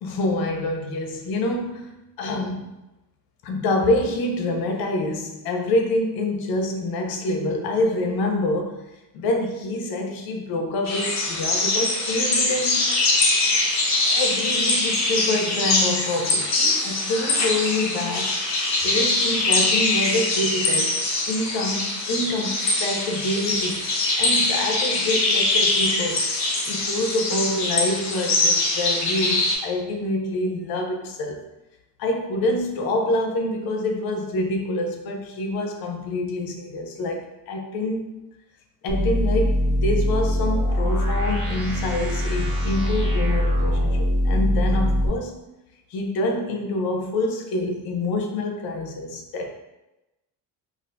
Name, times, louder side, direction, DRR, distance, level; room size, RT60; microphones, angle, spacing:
voice 1, 0.0-2.7 3.4-12.9 14.0-18.4 18.8-26.3 26.7-31.5 32.0-38.1 38.8-44.0 44.2-45.4 45.9-49.5, left 1 dB, 85° left, 3 dB, 0.7 m, -26 dB
sound 1, 10.8-29.6, left 2 dB, 50° left, 0.8 m, -23 dB
sound 2, 38.9-45.1, equal, 30° right, 1.3 m, -22 dB
2.6 x 2.5 x 3.2 m, 0.97 s
cardioid pair, 145°, 35 cm